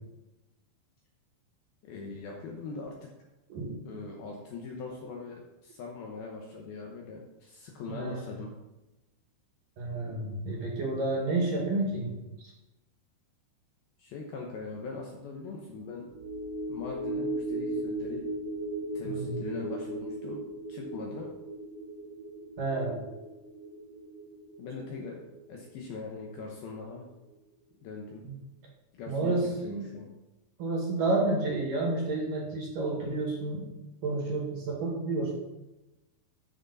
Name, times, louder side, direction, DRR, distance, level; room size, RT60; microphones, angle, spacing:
voice 1, 1.8-3.1 3.9-8.5 14.0-16.1 16.7-18.2 18.9-20.4 20.7-21.3 24.6-25.2 25.5-27.1 27.8-28.3 28.9-29.4 29.6-30.1, left 4 dB, 70° left, 0 dB, 2.4 m, -41 dB
voice 2, 9.8-12.1 19.0-19.4 22.6-23.0 28.2-28.3 29.1-29.9 30.6-33.7 34.0-35.3, right 2 dB, 55° right, -2 dB, 3.1 m, -30 dB
sound 1, 16.1-26.7 27.1-27.2, right 1 dB, 90° right, 5.2 m, -37 dB
13.0 x 6.1 x 4.1 m, 1.0 s
omnidirectional pair, 5.4 m